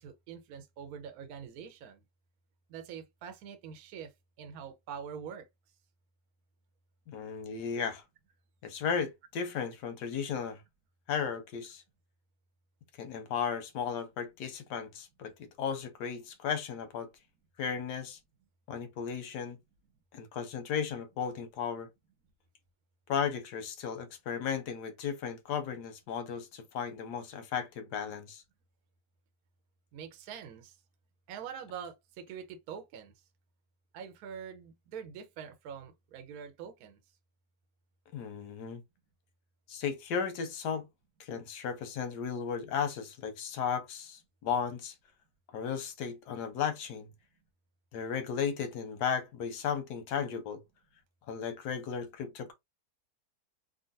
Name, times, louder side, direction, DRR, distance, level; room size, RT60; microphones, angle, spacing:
voice 1, 0.0-2.0 2.7-5.5 29.9-30.8 31.3-33.1 33.9-37.0, right 7 dB, 70° right, 1.1 m, -44 dB
voice 2, 7.1-8.0 8.6-10.6 11.1-11.8 13.0-15.3 15.6-17.1 17.6-18.2 18.7-19.6 20.1-21.9 23.1-28.4 38.1-38.8 39.7-40.9 41.2-44.9 45.5-47.1 47.9-50.6 51.3-52.5, left 7 dB, 85° left, 1.3 m, -35 dB
3.7 x 2.2 x 2.5 m
omnidirectional pair, 1.7 m